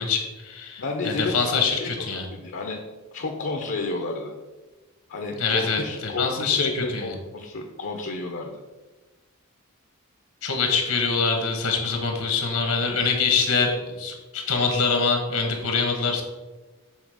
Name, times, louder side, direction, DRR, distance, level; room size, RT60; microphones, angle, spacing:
voice 1, 0.0-2.3 5.4-5.8 6.2-7.1 10.4-16.2, left 5 dB, 80° left, 3 dB, 1.3 m, -24 dB
voice 2, 0.8-2.0 2.3-2.8 3.1-4.3 5.1-8.5, left 2 dB, 60° left, 2 dB, 0.7 m, -31 dB
7.4 x 3.4 x 4.9 m, 1.2 s
head